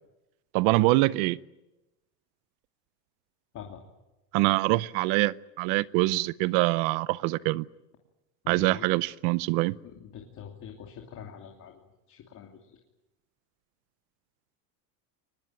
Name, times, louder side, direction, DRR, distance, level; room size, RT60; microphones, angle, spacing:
voice 1, 0.5-1.4 4.3-7.6 8.5-9.7, right 20 dB, 60° right, 0.8 m, -24 dB
voice 2, 8.4-8.9 9.8-11.8 12.1-12.8, left 8 dB, 35° left, 2.9 m, -44 dB
23.5 x 20.5 x 9.2 m
cardioid pair, 150°, 48 cm